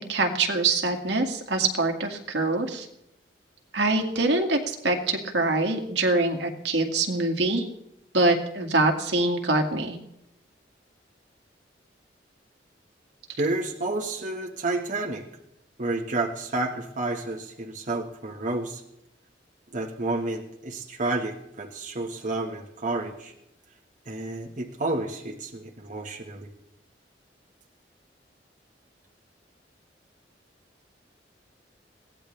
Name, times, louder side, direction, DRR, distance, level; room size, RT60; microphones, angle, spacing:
voice 1, 0.1-2.9 3.7-7.6 8.1-10.0, right 2 dB, 75° right, 3 dB, 2.1 m, -24 dB
voice 2, 13.4-15.2 15.8-18.8 19.7-23.3 24.0-26.5, right 2 dB, 45° right, 0 dB, 1.5 m, -30 dB
22.0 x 17.0 x 3.3 m, 0.80 s
head